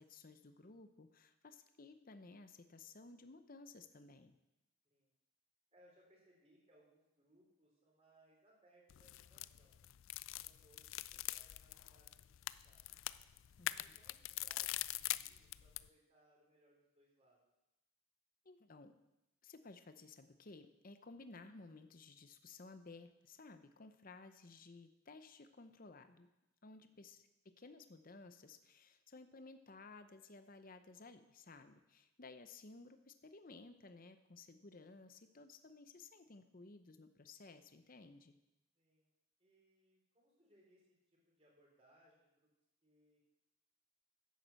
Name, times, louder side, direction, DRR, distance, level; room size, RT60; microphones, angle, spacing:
voice 1, 0.0-4.4 13.6-13.9 18.4-19.0 19.4-26.3 26.6-38.4, left 3 dB, 40° left, 9 dB, 0.7 m, -57 dB
voice 2, 5.7-9.8 10.3-12.8 13.6-17.4 26.8-27.2 38.8-39.1 39.4-42.5 42.8-43.2, right 1 dB, 30° right, -3 dB, 3.9 m, -71 dB
sound 1, 8.9-15.9, left 15 dB, 65° left, 0.3 m, -44 dB
10.5 x 8.2 x 7.5 m, 0.93 s
head